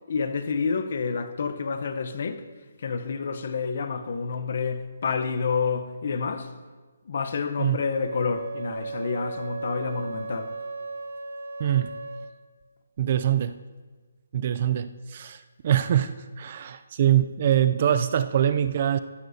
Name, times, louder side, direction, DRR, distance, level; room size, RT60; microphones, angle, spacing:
voice 1, 0.1-2.5 2.8-6.5 7.1-10.6, left 5 dB, 40° left, 0.8 m, -29 dB
Wind instrument woodwind instrument, 7.9-12.4, right 3 dB, 90° right, 1.0 m, -36 dB
voice 2, 11.6-11.9 13.0-13.6 14.3-19.0, right 10 dB, 30° right, 0.3 m, -24 dB
14.5 x 14.0 x 2.7 m
hypercardioid pair, 175°, 0 cm